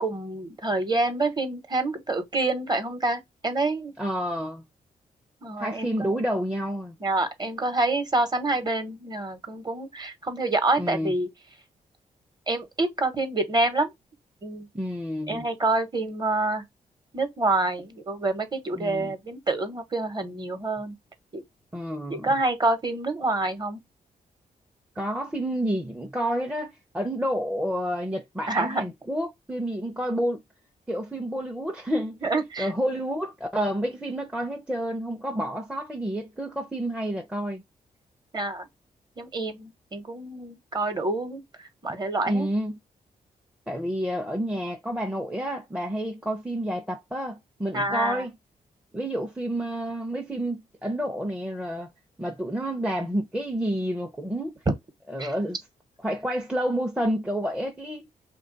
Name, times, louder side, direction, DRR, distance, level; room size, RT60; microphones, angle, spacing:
voice 1, 0.0-3.9 5.4-6.1 7.0-11.3 12.5-13.9 14.4-14.7 15.3-16.6 17.1-21.0 21.3-21.4 22.1-23.8 28.5-28.8 32.2-32.7 38.3-38.6 39.2-41.4 41.8-42.5 47.7-48.2 55.2-55.3, right 2 dB, 30° right, 0.9 m, -27 dB
voice 2, 4.0-4.6 5.6-7.0 10.8-11.1 14.7-15.5 18.8-19.1 21.7-22.3 25.0-30.4 30.9-32.2 32.6-37.6 42.2-42.8 43.7-48.3 48.9-51.9 52.2-54.6 55.1-55.6 56.0-58.0, equal, 5° right, 0.5 m, -29 dB
3.0 x 2.2 x 3.8 m
wide cardioid pair, 120°, 15 cm